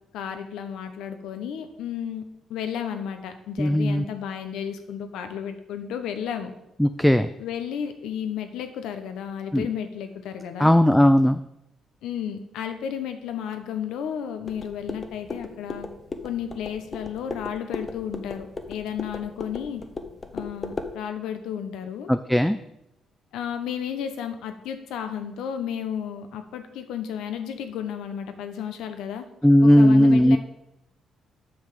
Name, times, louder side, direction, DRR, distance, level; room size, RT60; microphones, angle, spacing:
voice 1, 0.1-2.2 2.5-6.5 7.4-10.8 12.0-15.9 16.2-19.8 20.3-22.1 23.3-29.3 29.6-30.4, left 8 dB, 85° left, 7 dB, 1.1 m, -33 dB
voice 2, 3.6-4.0 6.8-7.3 9.5-9.7 10.6-11.4 22.1-22.6 29.4-30.4, equal, 5° left, 9 dB, 0.4 m, -17 dB
sound 1, 14.5-20.9, left 3 dB, 35° left, 1.1 m, -36 dB
7.9 x 5.9 x 6.9 m, 0.84 s
cardioid pair, 90°, 0 cm